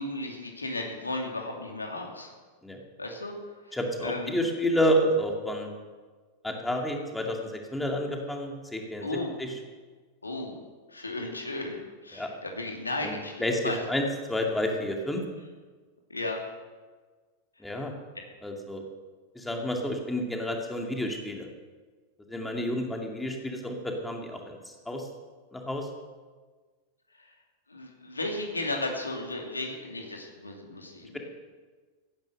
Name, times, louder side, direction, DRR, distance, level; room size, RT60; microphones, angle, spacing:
voice 1, 0.0-2.3 3.0-3.3 3.7-4.3 9.0-9.4 10.2-10.6 10.9-13.8 16.1-16.4 27.7-31.2, left 2 dB, 80° left, 2 dB, 2.6 m, -34 dB
voice 2, 3.7-5.7 6.4-9.1 9.4-9.5 12.1-12.3 13.0-13.1 13.4-15.2 17.6-17.9 18.4-18.8 19.3-21.5 22.3-25.1 25.5-25.9, equal, 5° left, 1 dB, 2.4 m, -30 dB
16.5 x 10.5 x 6.6 m, 1.4 s
figure-of-eight pair, 90°, 0 cm